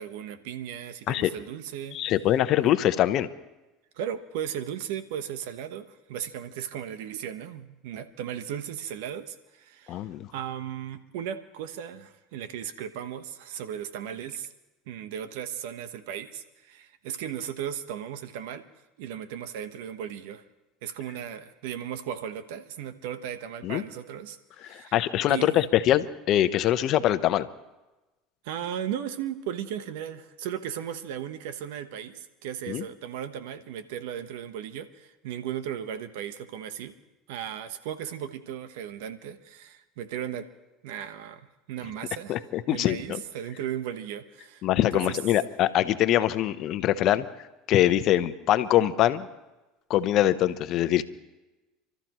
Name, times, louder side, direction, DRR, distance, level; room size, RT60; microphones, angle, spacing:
voice 1, 0.0-2.0 4.0-10.1 10.3-14.5 14.9-18.6 19.0-20.4 20.8-25.0 25.3-25.6 28.4-36.9 37.3-40.5 40.8-42.4 42.7-44.7 44.9-45.2, right 9 dB, 75° right, 11 dB, 1.1 m, -36 dB
voice 2, 1.9-3.3 9.9-10.3 23.6-23.8 24.7-27.5 32.7-32.8 42.3-43.2 44.6-47.3 47.7-49.3 49.9-51.0, left 12 dB, 55° left, 12 dB, 0.9 m, -23 dB
30.0 x 13.0 x 3.1 m, 1.1 s
supercardioid pair, 95°, 0 cm